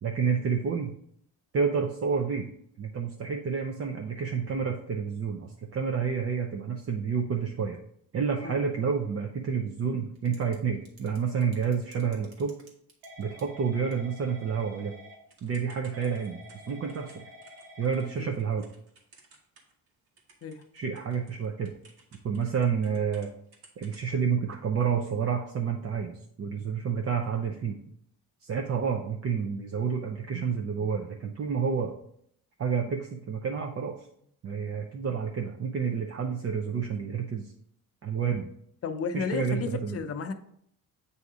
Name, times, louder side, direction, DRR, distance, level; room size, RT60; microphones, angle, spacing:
voice 1, 0.0-0.9 1.5-2.5 2.8-7.8 8.1-12.6 13.2-14.9 15.4-16.4 16.7-17.2 17.8-18.7 20.7-21.7 22.2-23.3 23.8-27.8 28.4-32.0 32.6-34.1 34.4-37.5 38.0-38.5 39.1-40.0, right 6 dB, 40° right, 2 dB, 0.6 m, -29 dB
Typing / Telephone, 10.2-10.6 10.9-19.9 20.2-23.3 23.5-24.1, equal, 90° right, 1.5 m, -50 dB
voice 2, 38.8-40.3, left 5 dB, 40° left, 7 dB, 0.6 m, -33 dB
8.1 x 2.8 x 4.8 m, 0.69 s
cardioid pair, 130°, 36 cm